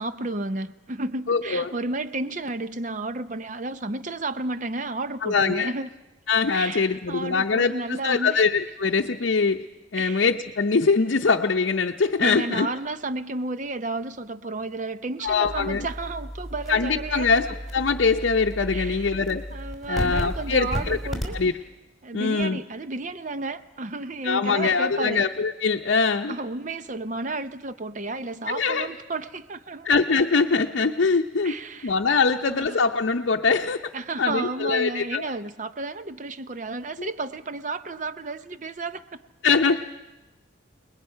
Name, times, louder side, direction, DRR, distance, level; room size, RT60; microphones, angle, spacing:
voice 1, 0.0-5.9 6.5-8.4 10.0-10.2 12.2-17.6 18.7-19.2 19.5-21.4 22.0-25.3 26.3-29.9 31.4-31.9 32.3-32.8 33.9-39.2, right 2 dB, 40° right, 12 dB, 0.6 m, -32 dB
voice 2, 1.3-1.7 5.2-5.7 6.3-7.7 8.0-9.6 9.9-12.7 15.2-15.9 16.7-17.5 17.7-19.4 19.9-21.0 21.3-21.5 22.1-22.6 24.2-26.3 28.5-28.9 29.8-31.6 31.8-33.8 34.2-35.2 37.0-37.1 39.4-39.8, left 4 dB, 70° left, 2 dB, 0.7 m, -22 dB
sound 1, 15.3-21.5, equal, ahead, 3.1 m, -34 dB
28.5 x 20.5 x 5.6 m, 1.1 s
head